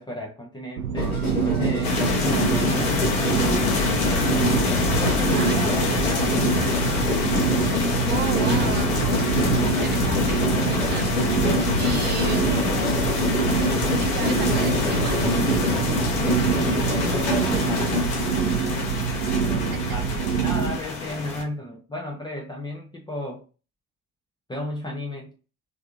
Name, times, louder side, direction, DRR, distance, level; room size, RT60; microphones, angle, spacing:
voice 1, 0.0-4.3 5.0-6.6 17.5-17.9 19.4-23.4 24.5-25.3, left 1 dB, 10° left, -1 dB, 0.8 m, -35 dB
sound 1, 0.8-20.8, right 8 dB, 75° right, 0.6 m, -26 dB
sound 2, 0.9-18.0, left 1 dB, 80° left, 1.2 m, -27 dB
sound 3, 1.8-21.4, left 6 dB, 55° left, 1.1 m, -27 dB
voice 2, 5.3-6.0 8.1-11.1 11.5-13.5 14.0-15.3 19.7-20.0, right 9 dB, 25° right, 8 dB, 0.5 m, -35 dB
3.4 x 3.2 x 2.4 m, 0.34 s
figure-of-eight pair, 50°, 43 cm